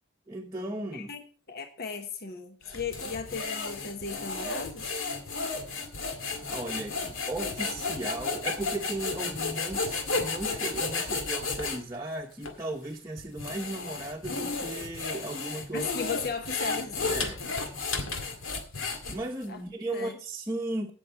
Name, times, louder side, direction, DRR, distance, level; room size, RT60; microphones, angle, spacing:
voice 1, 0.3-1.1 6.3-15.9 17.0-17.4 19.1-20.9, right 2 dB, 15° right, 0.9 m, -36 dB
voice 2, 0.9-5.0 15.7-17.3 19.5-19.6 19.9-20.2, left 5 dB, 50° left, 1.1 m, -36 dB
sound 1, 2.7-11.8 12.4-12.5 13.2-19.4, left 4 dB, 80° left, 2.0 m, -33 dB
16.5 x 6.5 x 4.6 m
head